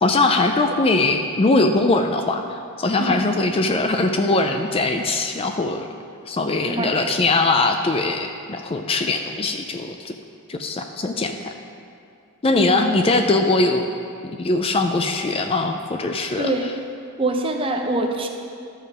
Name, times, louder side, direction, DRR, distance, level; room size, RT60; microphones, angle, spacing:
voice 1, 0.0-5.9 6.3-10.2 10.5-11.5 12.4-13.9 14.2-16.5, left 2 dB, 25° left, 5 dB, 0.4 m, -21 dB
voice 2, 6.7-7.2 12.5-13.2 16.4-16.7 17.2-18.3, right 2 dB, 25° right, 3 dB, 0.7 m, -25 dB
12.5 x 5.6 x 4.8 m, 2.5 s
head